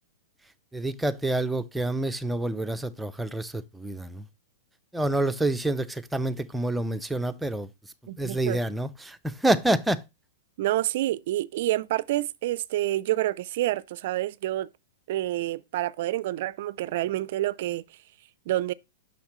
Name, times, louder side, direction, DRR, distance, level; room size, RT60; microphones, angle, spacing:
voice 1, 0.7-4.3 4.9-10.0, right 1 dB, 5° right, 0.6 m, -28 dB
voice 2, 8.1-8.6 10.6-14.7 15.1-17.8 18.5-18.7, right 15 dB, 60° right, 0.4 m, -28 dB
7.1 x 5.9 x 3.0 m
hypercardioid pair, 120°, 0 cm